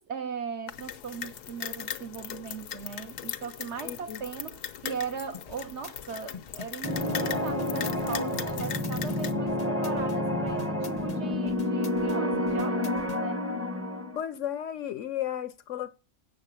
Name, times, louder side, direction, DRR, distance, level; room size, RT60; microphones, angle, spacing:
voice 1, 0.0-13.4, right 6 dB, 65° right, 0.7 m, -38 dB
sound 1, 0.7-9.3, left 10 dB, 85° left, 1.3 m, -39 dB
voice 2, 3.8-4.2 14.2-15.9, left 10 dB, 65° left, 0.8 m, -34 dB
sound 2, 5.3-13.2, left 6 dB, 50° left, 0.5 m, -44 dB
sound 3, 6.8-14.2, left 1 dB, 15° right, 0.6 m, -29 dB
8.1 x 6.6 x 6.8 m
omnidirectional pair, 1.7 m